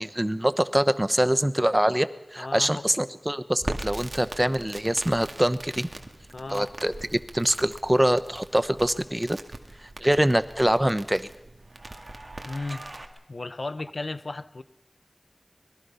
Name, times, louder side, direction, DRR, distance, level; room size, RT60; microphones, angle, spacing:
voice 1, 0.0-5.9 6.5-9.4 9.8-11.3, right 1 dB, 20° right, 13 dB, 1.0 m, -24 dB
voice 2, 2.4-2.9 6.3-6.7 12.4-12.8 13.3-14.6, left 2 dB, 90° left, 14 dB, 0.8 m, -34 dB
Crackle, 3.6-13.1, right 2 dB, 60° right, 2.1 m, -41 dB
24.5 x 21.0 x 5.6 m, 0.86 s
wide cardioid pair, 55°, 0 cm